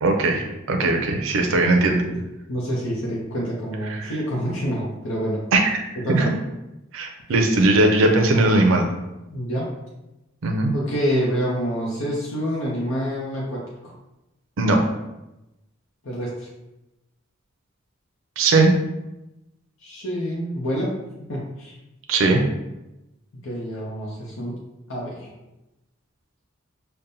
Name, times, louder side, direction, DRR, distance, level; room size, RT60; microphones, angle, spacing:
voice 1, 0.0-2.0 3.9-4.1 5.5-5.8 6.1-6.3 6.9-8.9 10.4-10.7 14.6-14.8 18.4-18.7 22.1-22.4, right 2 dB, 70° right, 3 dB, 0.5 m, -19 dB
voice 2, 2.5-5.4 6.0-6.3 9.3-9.8 10.7-13.9 16.0-16.5 19.8-21.0 21.3-21.8 23.4-24.6 24.9-25.3, equal, 80° left, -4 dB, 0.7 m, -27 dB
5.2 x 2.1 x 2.7 m, 0.96 s
head